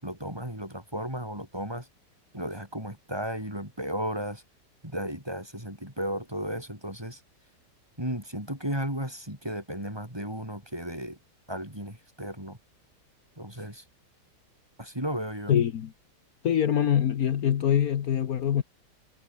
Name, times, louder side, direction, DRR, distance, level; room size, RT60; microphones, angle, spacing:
voice 1, 0.0-1.9 2.3-4.4 4.8-7.2 8.0-11.2 11.5-12.6 13.4-13.8 14.8-15.6, equal, 15° right, 7.1 m, -34 dB
voice 2, 15.5-15.9 16.4-18.6, left 9 dB, 60° left, 1.4 m, -24 dB
omnidirectional pair, 1.9 m